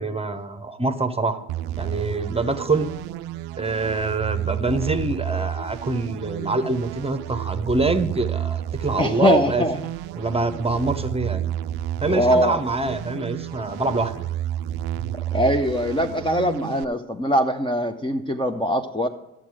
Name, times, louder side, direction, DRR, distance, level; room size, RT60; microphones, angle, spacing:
voice 1, 0.0-1.4 1.8-2.9 3.6-9.6 10.1-11.5 12.0-14.3, right 3 dB, 15° right, 9 dB, 1.0 m, -25 dB
sound 1, 1.5-16.8, right 12 dB, 65° right, 0.5 m, -31 dB
voice 2, 9.0-9.8 12.1-12.6 15.3-19.1, equal, 10° left, 4 dB, 0.8 m, -22 dB
12.0 x 7.6 x 4.8 m, 0.93 s
hypercardioid pair, 50°, 41 cm